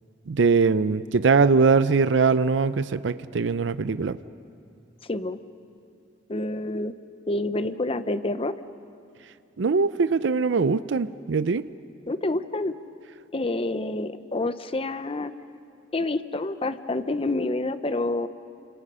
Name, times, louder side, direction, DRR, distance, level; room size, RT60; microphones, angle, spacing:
voice 1, 0.3-4.2 9.6-11.6, right 4 dB, 75° right, 14 dB, 0.5 m, -21 dB
voice 2, 5.0-5.4 6.3-6.9 7.3-8.5 12.1-12.7 13.3-15.3 15.9-18.3, left 2 dB, 30° left, 12 dB, 0.7 m, -28 dB
29.5 x 27.0 x 5.6 m, 2.5 s
head